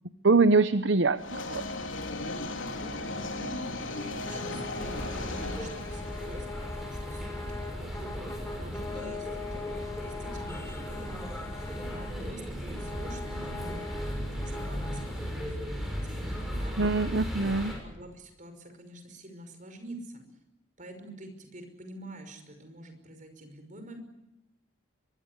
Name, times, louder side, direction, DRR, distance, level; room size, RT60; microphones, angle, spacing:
voice 1, 0.2-1.6 16.8-17.7, right 3 dB, 65° right, 11 dB, 0.8 m, -23 dB
sound 1, 1.2-6.3, left 2 dB, 75° left, 3.4 m, -36 dB
voice 2, 2.4-17.1 17.8-20.3 20.8-24.0, right 1 dB, 40° right, 7 dB, 5.6 m, -47 dB
sound 2, 3.8-15.4, left 2 dB, 15° left, 4.1 m, -41 dB
sound 3, 4.8-17.7, equal, ahead, 7.6 m, -37 dB
24.0 x 23.0 x 8.2 m, 0.94 s
head